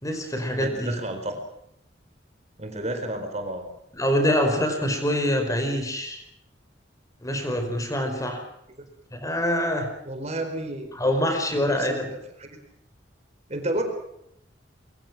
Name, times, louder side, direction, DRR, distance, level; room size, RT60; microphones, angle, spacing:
voice 1, 0.0-0.9 3.9-6.2 7.2-8.4 9.1-9.9 10.9-12.1, equal, 20° left, 5 dB, 5.1 m, -25 dB
voice 2, 0.6-1.4 2.6-3.7 8.8-8.9 10.0-10.9 11.5-12.5 13.5-13.8, right 1 dB, 35° right, 6 dB, 4.5 m, -31 dB
26.0 x 24.0 x 6.2 m, 0.77 s
head